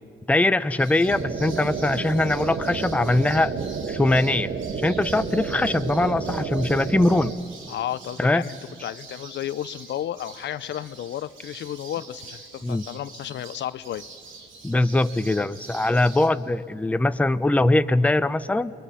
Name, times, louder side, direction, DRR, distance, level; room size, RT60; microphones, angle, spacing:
voice 1, 0.3-3.5 3.9-4.5 4.8-7.3 8.2-8.4 12.6-12.8 14.6-18.7, left 2 dB, 5° left, 12 dB, 0.6 m, -22 dB
sound 1, 0.8-16.3, right 4 dB, 75° right, 2.9 m, -45 dB
sound 2, 1.1-7.3, right 5 dB, 55° right, 1.3 m, -31 dB
voice 2, 7.7-14.0, left 11 dB, 65° left, 16 dB, 0.6 m, -33 dB
28.5 x 21.0 x 5.6 m, 2.5 s
cardioid pair, 90°, 20 cm